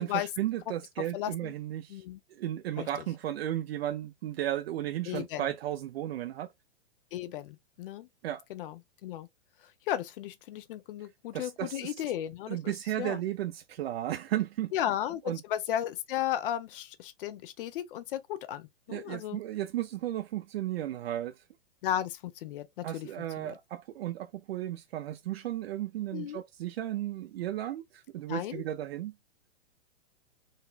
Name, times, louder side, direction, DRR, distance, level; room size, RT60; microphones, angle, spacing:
voice 1, 0.0-2.0 2.3-6.5 8.2-8.4 11.3-11.9 12.5-14.7 15.3-15.4 18.9-21.4 22.8-29.1, right 13 dB, 65° right, 0.5 m, -34 dB
voice 2, 1.0-1.5 1.9-2.2 2.8-2.9 5.1-5.5 7.1-8.1 8.5-9.3 9.9-12.7 13.0-13.2 14.7-19.4 21.8-23.1 23.4-23.6 26.1-26.4 28.3-28.6, left 11 dB, 55° left, 0.6 m, -35 dB
4.0 x 2.2 x 2.4 m
hypercardioid pair, 115°, 33 cm